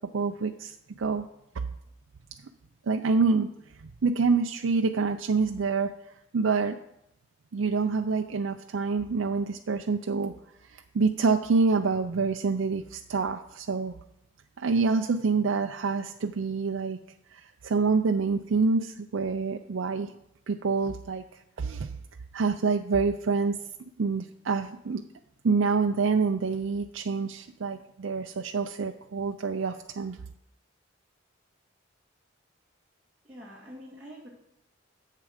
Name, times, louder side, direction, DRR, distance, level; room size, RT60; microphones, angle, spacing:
voice 1, 0.1-1.2 2.9-3.5 3.8-5.9 6.3-6.8 7.5-10.3 10.7-14.0 14.6-17.0 17.3-20.1 20.5-21.2 21.6-21.9 22.3-23.6 24.0-25.0 25.4-30.2, right 4 dB, 80° right, 5 dB, 0.5 m, -27 dB
voice 2, 33.2-34.3, equal, 10° right, -7 dB, 1.8 m, -45 dB
10.5 x 7.6 x 5.0 m, 0.80 s
head